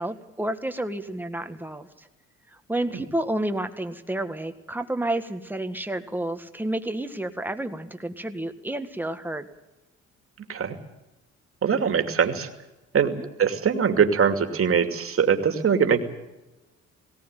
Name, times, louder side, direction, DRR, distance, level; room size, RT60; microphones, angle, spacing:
voice 1, 0.0-2.1 2.5-9.5 13.1-13.3, right 1 dB, 5° right, 7 dB, 1.8 m, -30 dB
voice 2, 11.6-12.5 12.9-13.1 13.4-16.0, right 7 dB, 45° right, 6 dB, 2.6 m, -22 dB
19.0 x 17.5 x 9.1 m, 1.0 s
cardioid pair, 90°, 30 cm